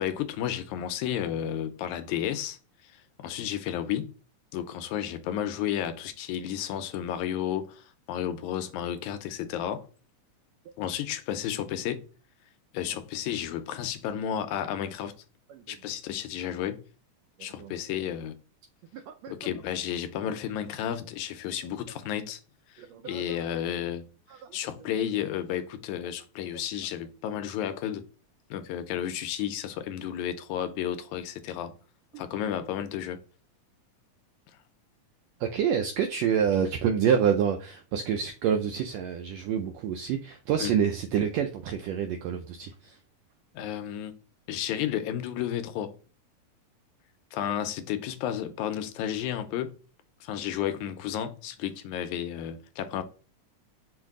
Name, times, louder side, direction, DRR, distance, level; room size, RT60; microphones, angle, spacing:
voice 1, 0.0-2.6 2.8-4.1 4.5-9.9 10.8-12.1 12.7-15.1 15.7-16.8 17.4-18.3 19.3-22.4 22.8-24.1 24.5-28.0 28.5-31.7 32.2-33.2 40.6-40.7 43.5-44.1 44.5-45.9 47.3-49.8 50.2-53.0, left 10 dB, 80° left, 1.9 m, -32 dB
voice 2, 17.4-17.8 18.9-19.3 22.8-23.4 32.1-32.2 35.4-43.0, right 8 dB, 85° right, 1.5 m, -28 dB
5.8 x 2.6 x 3.5 m
omnidirectional pair, 3.5 m